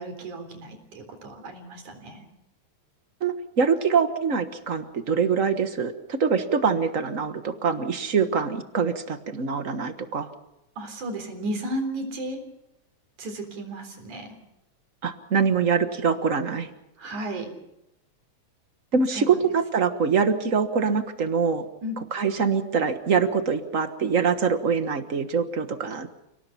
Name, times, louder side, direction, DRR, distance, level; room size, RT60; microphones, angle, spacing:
voice 1, 0.0-2.3 10.8-12.5 13.2-14.4 17.0-17.6 19.1-19.4 21.8-22.0, right 1 dB, 80° right, 5 dB, 5.2 m, -34 dB
voice 2, 3.2-10.3 15.0-16.7 18.9-21.6 22.1-26.1, right 6 dB, 45° right, 9 dB, 1.0 m, -24 dB
30.0 x 18.5 x 5.8 m, 0.88 s
omnidirectional pair, 3.4 m